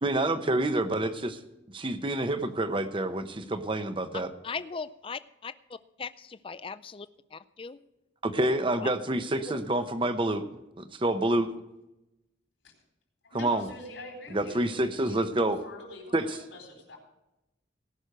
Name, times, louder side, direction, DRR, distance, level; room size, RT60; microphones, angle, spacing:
voice 1, 0.0-1.4 1.7-4.3 8.2-10.4 10.8-11.5 13.3-13.7 14.3-15.6 16.1-16.4, right 1 dB, 25° right, 9 dB, 0.8 m, -28 dB
voice 2, 4.4-7.8 8.8-8.9 9.5-9.6, left 5 dB, 30° left, 14 dB, 0.4 m, -39 dB
voice 3, 13.2-17.0, left 1 dB, 80° left, 2 dB, 4.2 m, -45 dB
18.0 x 6.3 x 6.7 m, 0.93 s
head